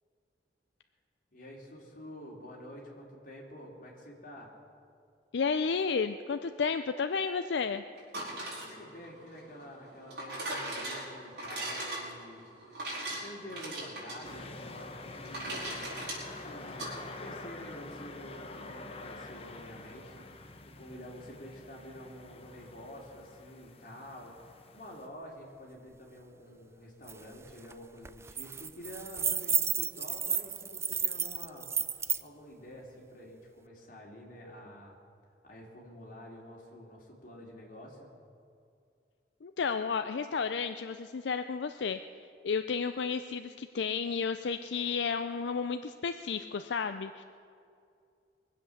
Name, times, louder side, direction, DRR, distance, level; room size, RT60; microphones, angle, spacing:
voice 1, 1.3-4.5 8.6-12.5 13.1-35.0 35.4-38.1, equal, 50° left, -2 dB, 3.0 m, -48 dB
voice 2, 5.3-7.8 39.4-42.0 42.4-47.2, left 5 dB, 80° left, 9 dB, 0.5 m, -32 dB
sound 1, 8.0-16.9, right 1 dB, 65° right, 5.1 m, -40 dB
sound 2, 14.2-25.1, left 2 dB, 35° left, 0.9 m, -47 dB
sound 3, 27.1-27.2 27.5-27.7 28.1-32.2, right 7 dB, 15° right, 0.3 m, -32 dB
22.5 x 8.1 x 7.1 m, 2.4 s
head